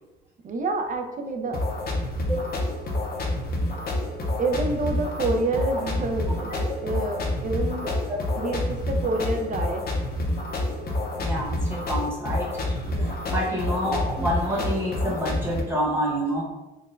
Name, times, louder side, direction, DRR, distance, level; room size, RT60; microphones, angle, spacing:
voice 1, 0.4-1.6 4.4-7.9 8.3-9.8 12.8-13.2, right 2 dB, 40° right, 5 dB, 0.5 m, -28 dB
sound 1, 1.5-15.6, left 1 dB, 50° left, 0.6 m, -28 dB
voice 2, 11.2-12.5 13.0-16.4, equal, 10° right, -4 dB, 1.1 m, -28 dB
3.9 x 2.2 x 2.5 m, 1.0 s
cardioid pair, 90°, 20 cm